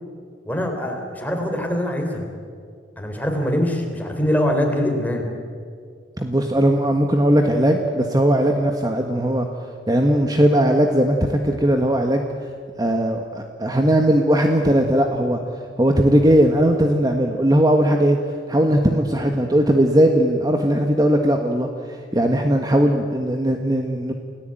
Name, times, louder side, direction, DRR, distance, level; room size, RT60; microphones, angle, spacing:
voice 1, 0.4-2.3 3.0-5.3, equal, 10° left, 2 dB, 4.1 m, -23 dB
voice 2, 6.2-9.5 9.9-12.2 12.8-15.4 15.8-18.2 18.5-21.7 22.1-24.1, right 1 dB, 20° right, 3 dB, 1.5 m, -18 dB
29.5 x 18.0 x 9.1 m, 2.1 s
head